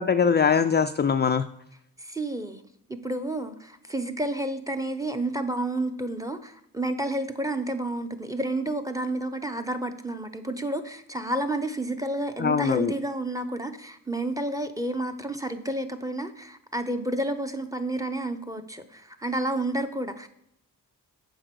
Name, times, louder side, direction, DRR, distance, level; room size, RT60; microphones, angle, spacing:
voice 1, 0.0-1.5 12.4-12.9, left 6 dB, 30° left, 9 dB, 0.3 m, -22 dB
voice 2, 2.0-2.6 2.9-20.3, right 1 dB, 10° right, 9 dB, 0.9 m, -30 dB
7.8 x 4.6 x 6.1 m, 0.76 s
cardioid pair, 60°, 38 cm